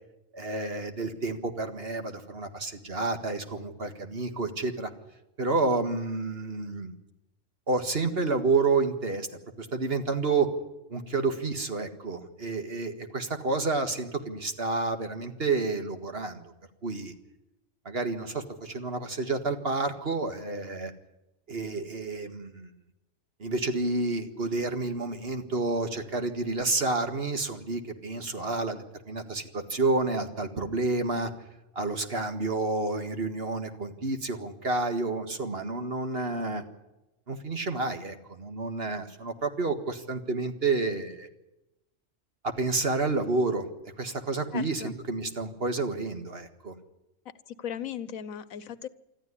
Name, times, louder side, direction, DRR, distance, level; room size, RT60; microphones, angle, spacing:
voice 1, 0.3-4.9 5.4-6.9 7.7-9.3 9.6-10.5 10.9-16.5 16.8-17.1 17.9-20.9 21.5-22.7 23.4-31.3 31.8-36.6 37.3-41.3 42.4-43.7 44.0-46.7, right 3 dB, 45° right, 7 dB, 2.0 m, -29 dB
voice 2, 44.5-44.9 47.5-48.9, left 9 dB, 85° left, 16 dB, 1.4 m, -37 dB
25.0 x 13.5 x 9.9 m, 0.95 s
omnidirectional pair, 1.4 m